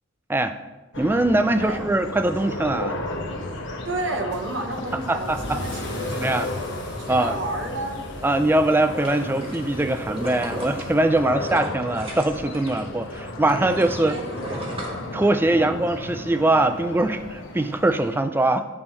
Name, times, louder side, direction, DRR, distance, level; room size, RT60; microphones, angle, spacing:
sound 1, 0.9-18.2, left 1 dB, 70° left, 1.0 m, -34 dB
voice 1, 1.0-3.0 5.1-5.6 6.1-6.5 7.1-7.3 8.2-14.2 15.1-18.7, right 2 dB, 10° right, 10 dB, 0.3 m, -22 dB
voice 2, 3.8-6.5 7.0-8.0 11.3-11.4 13.9-14.8 15.5-15.8, right 2 dB, 70° right, 4 dB, 0.9 m, -32 dB
Car / Engine starting / Accelerating revving vroom, 4.3-11.6, left 1 dB, 35° left, 2.2 m, -42 dB
sound 2, 8.7-12.8 13.1-15.6 16.1-16.2, right 1 dB, 30° right, 1.2 m, -36 dB
9.6 x 3.7 x 4.4 m, 1.1 s
head